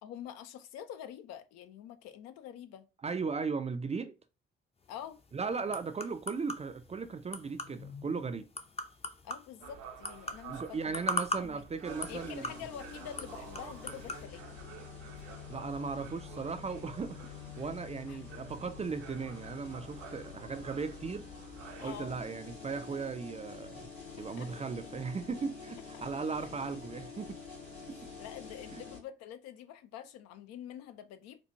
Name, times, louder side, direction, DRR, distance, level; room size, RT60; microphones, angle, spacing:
voice 1, 0.0-2.9 4.9-5.2 9.2-11.1 11.4-11.6 12.1-14.6 18.1-18.2 21.8-22.2 24.2-24.5 25.9-26.0 28.2-31.4, left 10 dB, 60° left, 0.6 m, -46 dB
voice 2, 3.0-4.1 5.3-8.4 10.5-12.6 15.5-21.3 21.8-23.9 24.2-27.4 27.9-28.0 28.7-28.8, right 5 dB, 20° right, 0.5 m, -37 dB
sound 1, 4.8-14.3, left 2 dB, 20° left, 0.6 m, -41 dB
sound 2, 9.6-22.3, right 6 dB, 60° right, 0.7 m, -51 dB
sound 3, 11.8-29.0, left 6 dB, 85° left, 1.8 m, -47 dB
4.5 x 2.4 x 2.6 m
figure-of-eight pair, 45°, 30 cm